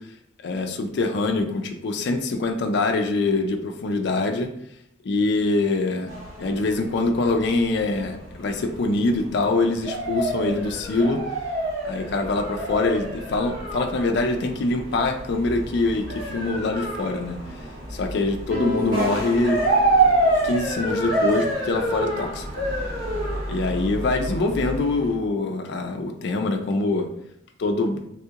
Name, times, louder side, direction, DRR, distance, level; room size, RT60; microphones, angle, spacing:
voice 1, 0.4-4.5 5.0-6.1 6.4-11.2 11.8-17.4 17.9-19.7 20.0-20.1 20.4-22.5 23.4-27.1 27.6-28.0, left 2 dB, 60° left, 4 dB, 0.4 m, -24 dB
sound 1, 6.1-25.2, right 2 dB, 40° right, 1.4 m, -27 dB
sound 2, 18.5-20.9, left 2 dB, 10° right, 1.0 m, -33 dB
3.5 x 2.4 x 2.8 m, 0.76 s
head